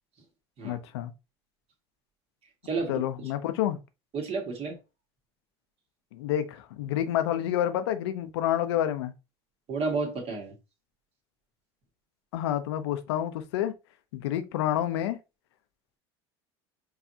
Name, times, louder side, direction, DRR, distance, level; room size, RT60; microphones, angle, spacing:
voice 1, 0.6-1.1 2.9-3.8 6.1-9.1 12.3-13.7 14.1-15.2, left 11 dB, 80° left, 0.6 m, -28 dB
voice 2, 4.1-4.8 9.7-10.5, right 4 dB, 45° right, 1.8 m, -31 dB
4.7 x 3.2 x 2.8 m
hypercardioid pair, 75°, 14 cm